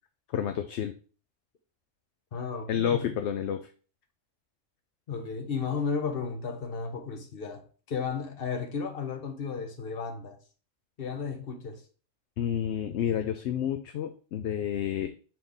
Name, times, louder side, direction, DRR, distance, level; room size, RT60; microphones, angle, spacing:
voice 1, 0.3-0.9 2.7-3.7 12.4-15.1, left 9 dB, 65° left, 0.8 m, -29 dB
voice 2, 2.3-3.1 5.1-7.6 7.9-10.4 11.0-11.8, left 5 dB, 50° left, 1.1 m, -33 dB
6.8 x 4.0 x 3.5 m
omnidirectional pair, 1.3 m